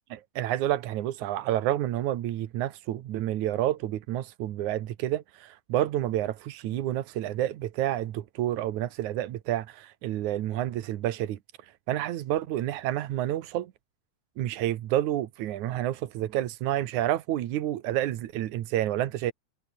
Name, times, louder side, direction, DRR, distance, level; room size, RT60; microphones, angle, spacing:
voice 1, 0.1-11.4 11.9-13.7 14.4-19.3, right 13 dB, 85° right, 2.6 m, -29 dB
omnidirectional pair, 3.4 m